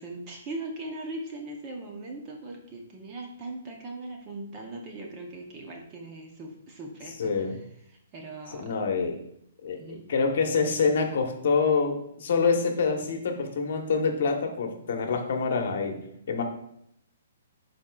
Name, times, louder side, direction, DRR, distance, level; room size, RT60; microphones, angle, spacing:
voice 1, 0.0-8.7 9.8-10.0, right 2 dB, 20° right, 1 dB, 0.7 m, -40 dB
voice 2, 7.2-7.6 8.5-9.2 9.6-16.0 16.3-16.4, left 5 dB, 55° left, 4 dB, 1.1 m, -26 dB
11.5 x 4.2 x 2.3 m, 0.74 s
hypercardioid pair, 170°, 0 cm